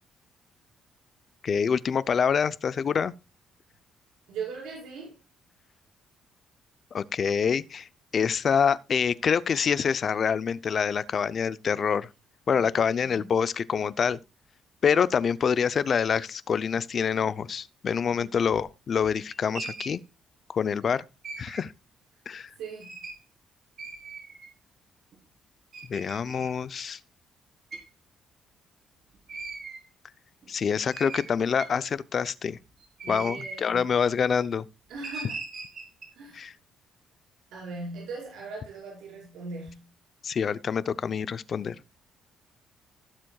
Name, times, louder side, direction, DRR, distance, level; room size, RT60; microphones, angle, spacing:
voice 1, 1.4-3.1 6.9-12.1 12.5-14.2 14.8-20.0 20.5-21.0 21.4-21.7 22.3-22.5 25.9-27.0 30.5-32.6 33.1-34.6 36.3-36.5 40.2-41.8, left 7 dB, 40° left, 0.6 m, -26 dB
voice 2, 4.3-5.2 12.5-13.3 18.1-18.3 22.5-22.9 33.0-33.9 34.9-35.4 36.1-36.5 37.5-39.9, right 4 dB, 85° right, 5.7 m, -40 dB
sound 1, 18.5-18.6 19.0-19.9 21.2-21.6 22.8-23.2 23.8-24.5 25.1-25.2 25.7-26.5 27.7-27.9 29.3-29.8 30.4-30.5 30.9-31.9 32.8-33.6 35.0-36.1, right 3 dB, 45° right, 4.0 m, -39 dB
16.5 x 7.5 x 2.3 m
cardioid pair, 130°, 0 cm